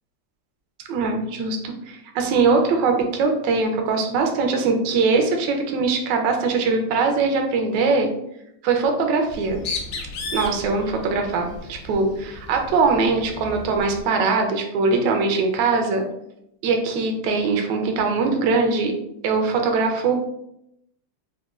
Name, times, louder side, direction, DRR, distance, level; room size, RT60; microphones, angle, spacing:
voice 1, 0.9-8.1 8.6-9.6 10.3-16.0 16.6-18.9 19.2-20.2, right 4 dB, 75° right, 3 dB, 1.1 m, -21 dB
Bird, 9.2-14.1, left 3 dB, 75° left, 1.1 m, -35 dB
4.1 x 2.1 x 2.3 m, 0.78 s
omnidirectional pair, 2.4 m